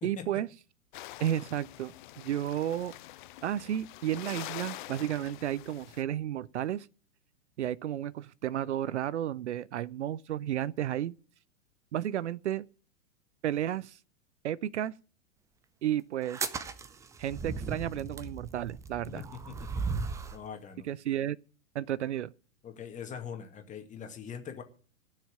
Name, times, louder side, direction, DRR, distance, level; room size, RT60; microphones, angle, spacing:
voice 1, 0.0-0.5 1.2-2.9 3.4-6.9 7.6-11.2 11.9-12.7 13.4-14.0 14.4-14.9 15.8-16.4 17.2-19.3 20.8-21.4 21.7-22.3, right 11 dB, 60° right, 0.5 m, -32 dB
sound 1, 0.9-6.0, left 16 dB, 40° left, 0.6 m, -45 dB
sound 2, 16.2-20.4, right 4 dB, 10° right, 0.5 m, -37 dB
voice 2, 19.1-19.8 20.3-20.9 22.6-24.6, left 7 dB, 20° left, 2.1 m, -42 dB
15.0 x 6.5 x 8.7 m
figure-of-eight pair, 105°, 40 cm